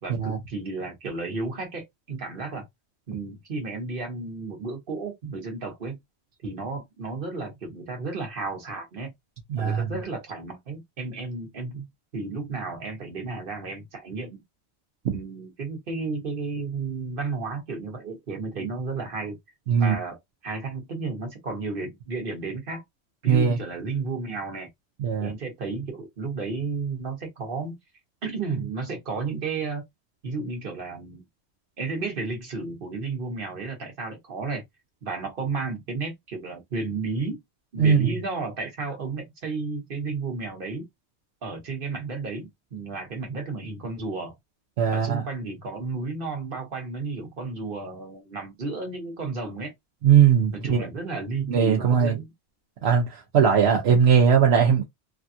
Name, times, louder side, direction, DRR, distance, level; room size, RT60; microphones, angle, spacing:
voice 1, 0.0-2.7 3.1-6.0 6.4-9.1 9.6-11.8 12.1-14.4 15.1-19.4 19.8-22.8 23.2-24.7 25.2-27.8 28.2-29.8 30.2-31.2 31.8-34.6 35.0-37.4 37.7-40.8 41.4-44.3 44.9-49.7 50.5-52.3, right 4 dB, 55° right, 1.3 m, -32 dB
voice 2, 9.5-9.8 15.0-15.2 19.7-19.9 23.3-23.6 25.0-25.3 37.8-38.1 44.8-45.2 50.0-50.9 51.5-52.2 52.8-54.8, right 7 dB, 75° right, 1.0 m, -19 dB
3.4 x 2.2 x 2.6 m
omnidirectional pair, 1.1 m